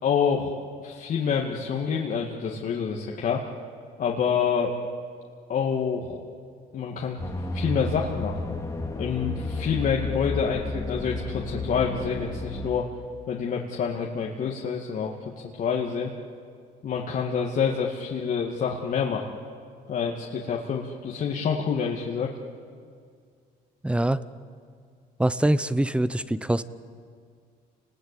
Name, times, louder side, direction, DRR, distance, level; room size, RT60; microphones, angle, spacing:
voice 1, 0.0-0.5 0.8-3.4 4.0-4.7 5.5-6.2 6.7-7.2 7.5-8.6 8.9-12.9 13.3-16.1 16.8-19.3 19.9-22.3, left 6 dB, 50° left, -1 dB, 2.2 m, -27 dB
sound 1, 7.2-12.7, left 2 dB, 15° left, 2.4 m, -32 dB
voice 2, 23.8-24.2 25.2-26.6, right 1 dB, 5° right, 15 dB, 0.8 m, -24 dB
29.5 x 20.5 x 8.5 m, 2.2 s
cardioid pair, 110°, 17 cm